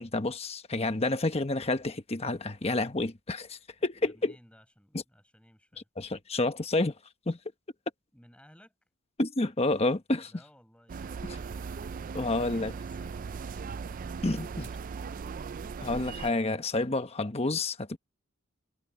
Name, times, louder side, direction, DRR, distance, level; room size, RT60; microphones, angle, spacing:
voice 1, 0.0-4.3 6.0-6.9 7.3-7.4 9.2-10.3 12.1-12.7 14.2-14.7 15.8-18.0, left 2 dB, 30° left, 1.1 m, -29 dB
voice 2, 4.0-5.9 8.1-8.7 10.2-11.7 12.1-14.7, equal, 5° left, 6.3 m, -59 dB
sound 1, 10.9-16.3, right 5 dB, 40° right, 0.3 m, -38 dB
head